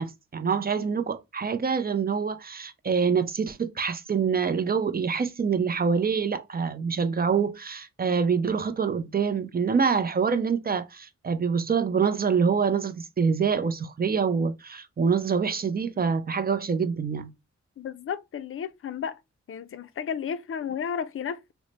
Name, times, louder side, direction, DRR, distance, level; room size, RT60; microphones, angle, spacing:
voice 1, 0.0-17.3, right 6 dB, 30° right, 0.5 m, -26 dB
voice 2, 17.8-19.2 19.5-21.5, left 7 dB, 45° left, 0.4 m, -33 dB
3.1 x 2.1 x 3.8 m
wide cardioid pair, 95°, 30 cm